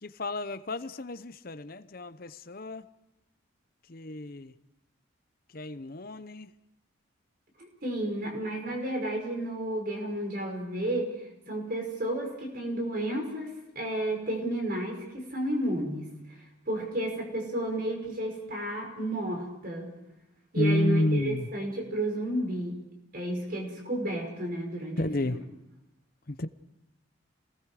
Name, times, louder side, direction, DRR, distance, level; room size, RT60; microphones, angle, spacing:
voice 1, 0.0-2.8 3.9-4.5 5.5-6.5 20.5-21.5 25.0-25.4 26.3-26.5, left 1 dB, 45° left, 12 dB, 0.8 m, -30 dB
voice 2, 7.6-19.9 20.5-22.8 23.1-25.4, right 1 dB, 45° right, 2 dB, 5.9 m, -32 dB
30.0 x 20.0 x 5.0 m, 0.86 s
head